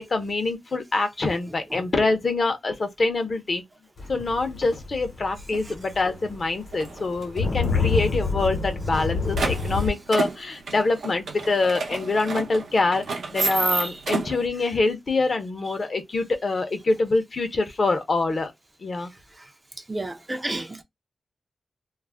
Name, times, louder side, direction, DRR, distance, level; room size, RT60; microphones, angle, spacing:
voice 1, 0.0-3.6 4.1-13.0 13.3-18.5 18.8-19.1, left 3 dB, 50° left, 0.6 m, -25 dB
sound 1, 4.0-9.9, left 5 dB, 75° left, 0.9 m, -27 dB
sound 2, 5.5-5.6 6.1-6.4 6.7-7.6 7.9-8.0 8.2-8.3 8.8-14.5, right 4 dB, 85° right, 0.7 m, -30 dB
voice 2, 19.9-20.8, right 2 dB, 20° right, 0.4 m, -31 dB
2.3 x 2.0 x 3.4 m
wide cardioid pair, 95°, 0 cm